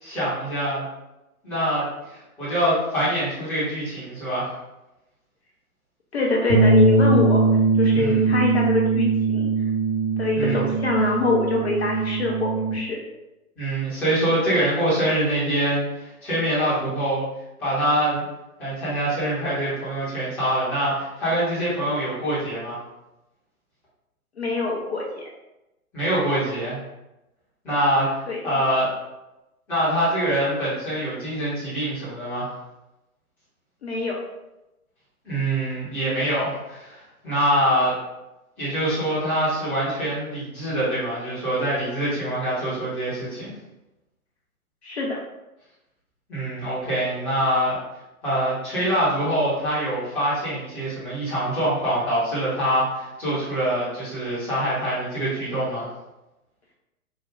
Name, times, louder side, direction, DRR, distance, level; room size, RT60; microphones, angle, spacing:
voice 1, 0.0-0.8 1.4-4.5 7.9-8.2 10.3-10.6 13.6-17.3 17.6-18.2 18.6-22.8 25.9-26.8 27.6-28.9 29.7-32.5 35.2-37.9 38.6-43.5 46.3-47.8 48.2-55.8, right 1 dB, 5° left, -13 dB, 0.6 m, -24 dB
voice 2, 6.1-7.4 7.7-9.5 10.2-13.0 24.4-25.2 28.3-28.4 33.8-34.2 44.8-45.2, left 3 dB, 45° left, -1 dB, 0.6 m, -24 dB
Bass guitar, 6.5-12.7, right 3 dB, 35° right, 0.7 m, -21 dB
3.5 x 2.1 x 3.2 m, 0.97 s
figure-of-eight pair, 125°, 44 cm